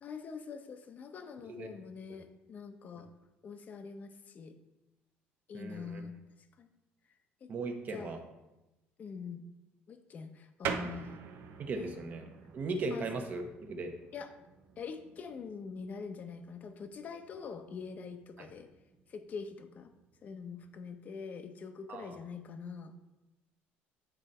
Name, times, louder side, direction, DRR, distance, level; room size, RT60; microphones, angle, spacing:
voice 1, 0.0-3.1 3.4-4.5 5.5-6.1 6.6-6.7 7.4-7.5 7.9-8.2 9.0-9.4 9.9-11.2 11.8-11.9 12.9-13.1 14.1-14.3 14.8-18.7 19.1-19.9 20.2-23.0, left 5 dB, 40° left, 7 dB, 0.8 m, -44 dB
voice 2, 5.5-6.0 7.5-8.2 11.6-12.3 12.5-13.9 21.9-22.2, right 3 dB, 40° right, 5 dB, 1.0 m, -37 dB
sound 1, 10.6-20.8, right 7 dB, 60° right, 0.8 m, -46 dB
9.1 x 3.9 x 4.3 m, 1.0 s
cardioid pair, 130°, 4 cm